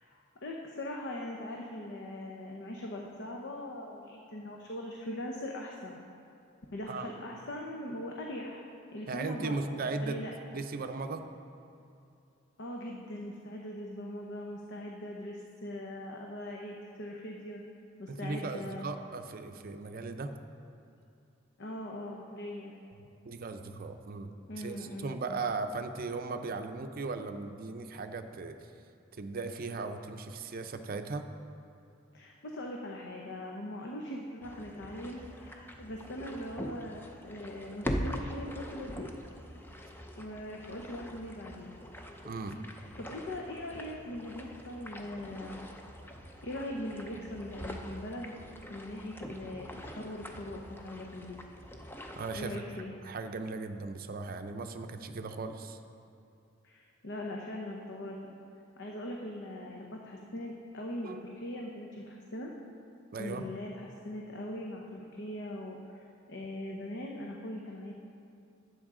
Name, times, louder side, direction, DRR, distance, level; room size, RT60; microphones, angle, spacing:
voice 1, 0.0-6.0 6.7-8.6 8.9-9.6 10.0-10.6 12.6-17.6 18.0-18.9 21.6-22.7 24.5-25.2 32.1-39.1 40.2-41.8 42.7-45.6 46.4-48.3 48.7-51.4 52.4-52.9 56.6-58.3 58.8-62.5 63.2-67.9, left 1 dB, 60° left, 0 dB, 0.8 m, -41 dB
voice 2, 9.1-10.2 10.5-11.3 18.1-20.3 23.2-28.6 29.1-31.3 42.2-42.6 52.1-52.6 53.0-55.8 61.0-61.2 63.1-63.4, right 3 dB, 45° right, 7 dB, 0.5 m, -37 dB
sound 1, 34.4-52.5, equal, 10° left, 0.5 m, -43 dB
12.0 x 8.0 x 3.7 m, 2.6 s
head